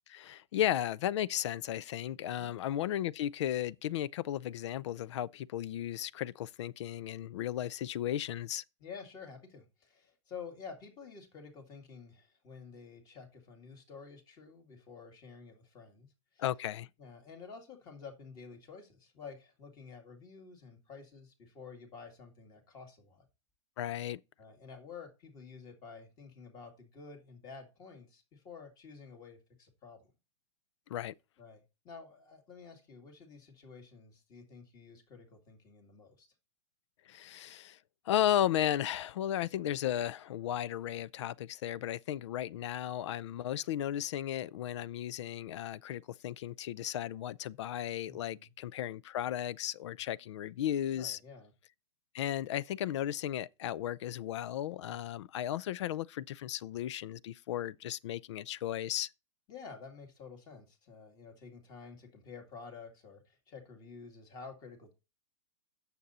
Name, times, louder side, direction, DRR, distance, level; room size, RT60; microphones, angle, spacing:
voice 1, 0.1-8.6 16.4-16.9 23.8-24.2 30.9-31.1 37.1-37.8 38.1-51.2 52.1-59.1, left 11 dB, 70° left, 0.5 m, -35 dB
voice 2, 8.8-16.1 16.3-16.4 17.0-23.3 24.4-30.1 31.4-36.3 48.1-48.5 50.9-51.5 59.5-64.9, left 5 dB, 25° left, 2.0 m, -50 dB
9.0 x 6.8 x 4.2 m
supercardioid pair, 165°, 16 cm